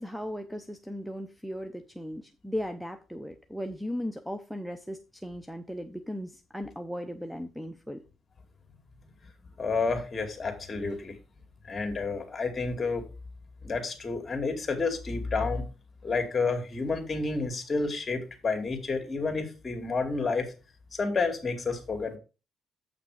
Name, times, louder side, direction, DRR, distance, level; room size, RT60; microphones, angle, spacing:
voice 1, 0.0-8.0, equal, ahead, 9 dB, 0.7 m, -37 dB
voice 2, 9.6-11.2 11.6-13.0 13.6-15.7 16.0-20.5 20.9-22.2, left 4 dB, 30° left, 5 dB, 2.4 m, -30 dB
7.7 x 5.8 x 4.9 m, 0.32 s
cardioid pair, 90°, 0 cm